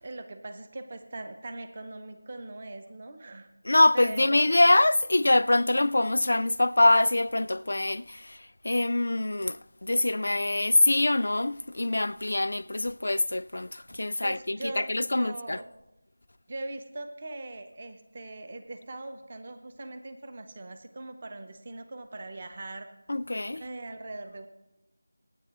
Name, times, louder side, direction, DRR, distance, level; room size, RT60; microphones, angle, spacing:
voice 1, 0.0-3.5 3.9-4.6 14.2-15.7 16.5-22.9 23.5-24.5, right 2 dB, 25° right, 0.7 m, -41 dB
voice 2, 3.6-8.4 8.6-15.6 23.1-23.7, left 2 dB, 65° left, 0.3 m, -24 dB
23.5 x 9.7 x 3.0 m
figure-of-eight pair, 175°, 0 cm